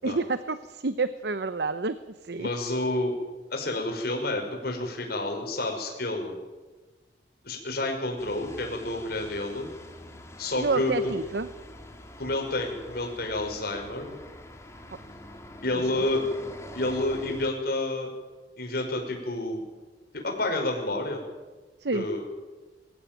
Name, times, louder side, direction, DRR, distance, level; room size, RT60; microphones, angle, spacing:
voice 1, 0.0-2.0 2.2-2.5 10.6-11.5 15.7-15.9 21.8-22.0, right 3 dB, 65° right, 12 dB, 0.9 m, -29 dB
voice 2, 2.4-3.1 3.5-6.3 7.4-9.7 10.4-11.1 12.2-14.2 15.6-16.2 16.7-18.1 18.6-19.6 20.1-21.2 21.9-22.2, left 2 dB, 60° left, 2 dB, 5.6 m, -29 dB
sound 1, 8.2-17.5, left 1 dB, 15° left, 2.4 m, -45 dB
22.5 x 15.5 x 9.2 m, 1.2 s
head